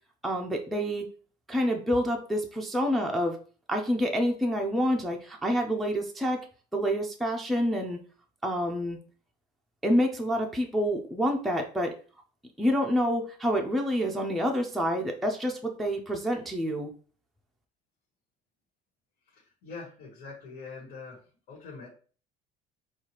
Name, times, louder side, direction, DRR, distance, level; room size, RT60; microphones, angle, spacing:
voice 1, 0.2-1.0 1.5-3.4 3.7-6.5 6.7-8.0 8.4-9.0 9.8-12.0 12.6-16.9, equal, ahead, 1 dB, 0.4 m, -27 dB
voice 2, 19.3-21.2 21.5-21.9, left 4 dB, 85° left, -4 dB, 1.4 m, -43 dB
4.5 x 2.4 x 2.9 m, 0.40 s
cardioid pair, 145°, 17 cm